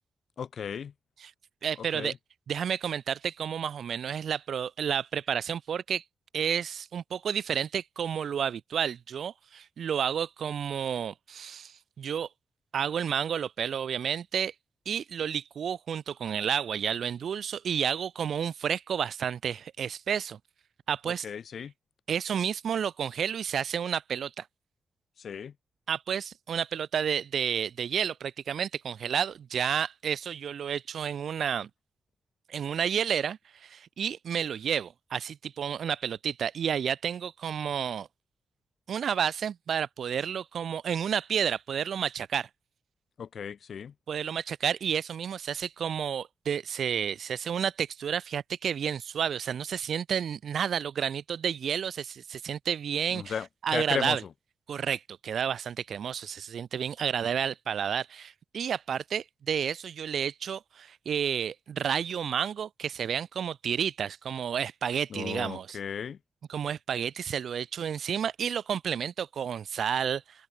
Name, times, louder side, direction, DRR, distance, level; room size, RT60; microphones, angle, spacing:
voice 1, 0.4-0.9 1.8-2.2 21.1-21.7 25.2-25.5 43.2-43.9 53.1-54.2 65.1-66.2, left 7 dB, 70° left, 4.3 m, -35 dB
voice 2, 1.6-2.1 2.5-6.0 6.3-12.3 12.7-14.5 14.9-20.4 20.9-21.3 22.1-24.5 25.9-31.7 32.5-38.1 38.9-42.5 44.1-53.3 53.6-54.2 54.7-65.8 66.5-70.5, right 8 dB, 70° right, 2.0 m, -31 dB
open air
cardioid pair, 60°, 0 cm